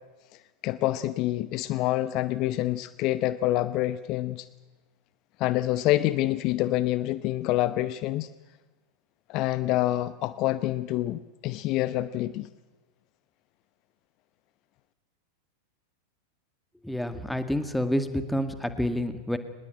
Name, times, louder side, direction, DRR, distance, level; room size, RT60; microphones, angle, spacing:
voice 1, 0.3-4.5 5.4-8.3 9.3-12.5, left 15 dB, 40° left, 15 dB, 0.8 m, -27 dB
voice 2, 16.8-19.4, left 1 dB, ahead, 9 dB, 2.1 m, -28 dB
24.5 x 20.5 x 9.0 m, 1.2 s
figure-of-eight pair, 90°, 0 cm